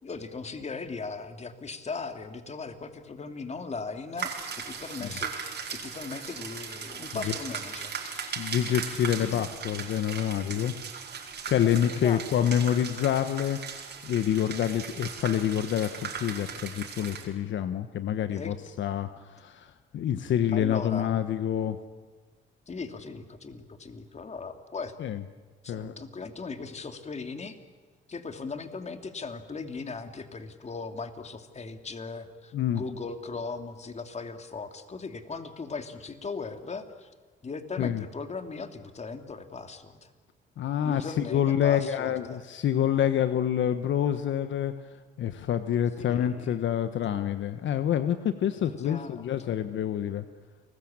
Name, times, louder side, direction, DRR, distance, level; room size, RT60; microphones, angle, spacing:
voice 1, 0.0-5.3 5.7-8.4 9.3-9.4 11.8-12.5 18.3-18.5 20.5-21.1 22.7-24.9 25.6-27.6 28.1-37.1 37.4-40.1 40.8-42.4 46.0-46.5 48.6-49.5, left 4 dB, 35° left, 7 dB, 2.8 m, -38 dB
sound 1, 4.2-17.3, right 6 dB, 60° right, 4.9 m, -38 dB
voice 2, 8.4-10.7 11.4-13.6 14.0-21.8 25.0-25.2 25.7-26.0 32.5-32.8 37.8-38.0 40.6-50.2, left 10 dB, 70° left, 10 dB, 1.3 m, -27 dB
29.5 x 20.5 x 8.9 m, 1.4 s
cardioid pair, 90°, 20 cm